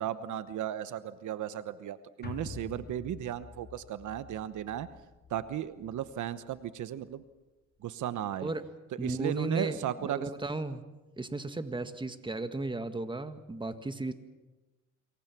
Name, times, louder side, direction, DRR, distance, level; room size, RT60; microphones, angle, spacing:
voice 1, 0.0-4.9 5.3-7.2 7.8-8.5 9.0-10.3, right 11 dB, 75° right, 13 dB, 1.1 m, -35 dB
sound 1, 2.2-6.7 7.0-7.1, left 5 dB, 35° left, 2.2 m, -48 dB
voice 2, 9.0-10.8 11.2-14.1, right 2 dB, 15° right, 9 dB, 1.8 m, -35 dB
27.0 x 23.0 x 6.1 m, 1.1 s
cardioid pair, 90°, 30 cm